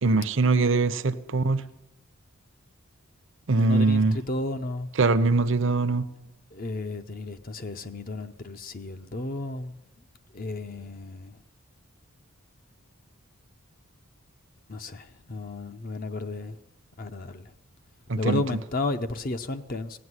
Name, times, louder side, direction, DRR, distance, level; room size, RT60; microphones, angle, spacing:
voice 1, 0.0-1.6 3.5-4.2 5.0-6.1 18.1-18.4, right 3 dB, 55° right, 12 dB, 0.7 m, -22 dB
voice 2, 3.5-4.9 6.5-9.7 10.3-11.4 14.7-16.6 17.0-17.5 18.2-20.0, left 2 dB, 40° left, 9 dB, 0.6 m, -33 dB
17.0 x 7.8 x 9.6 m, 0.97 s
head